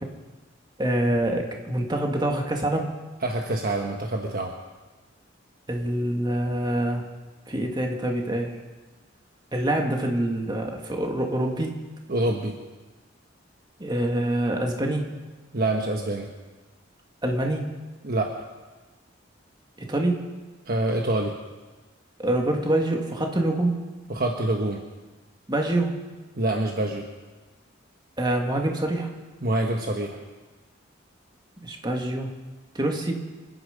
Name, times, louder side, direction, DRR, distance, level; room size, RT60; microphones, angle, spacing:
voice 1, 0.8-2.9 5.7-7.1 7.5-8.6 9.5-11.8 13.8-15.1 17.2-17.7 19.8-20.3 22.2-23.9 25.5-26.0 28.2-29.1 31.6-32.3 32.7-33.2, right 1 dB, 20° right, 2 dB, 2.0 m, -25 dB
voice 2, 3.2-4.5 12.1-12.6 15.5-16.3 18.0-18.3 20.7-21.3 24.1-24.8 26.4-27.1 29.4-30.2, right 2 dB, 50° right, 2 dB, 1.3 m, -26 dB
26.5 x 10.5 x 5.2 m, 1.3 s
head